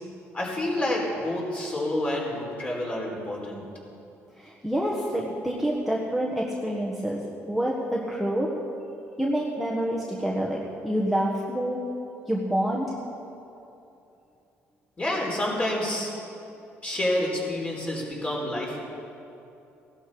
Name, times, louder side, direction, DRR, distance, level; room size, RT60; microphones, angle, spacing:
voice 1, 0.3-3.6 15.0-16.1 16.8-18.8, left 1 dB, 25° left, -3 dB, 4.2 m, -28 dB
voice 2, 4.4-8.5 9.2-10.6 10.8-11.8 12.3-12.9, equal, ahead, -3 dB, 1.5 m, -27 dB
17.0 x 12.0 x 5.0 m, 2.8 s
cardioid pair, 100°, 5 cm